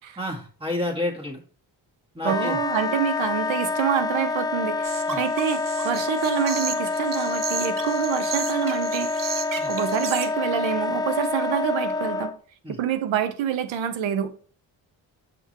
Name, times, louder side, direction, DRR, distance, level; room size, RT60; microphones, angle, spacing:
voice 1, 0.2-1.4 2.1-2.6 5.1-5.2 9.6-9.7 12.6-12.8, left 1 dB, 10° right, 1.7 m, -30 dB
Wind instrument woodwind instrument, 2.2-12.3, left 3 dB, 10° left, 0.4 m, -27 dB
voice 2, 2.2-9.4 9.7-12.3 12.8-14.3, right 9 dB, 80° right, 0.8 m, -27 dB
sound 1, 4.8-10.3, right 6 dB, 45° right, 0.9 m, -34 dB
6.0 x 5.8 x 2.9 m
cardioid pair, 70°, 45 cm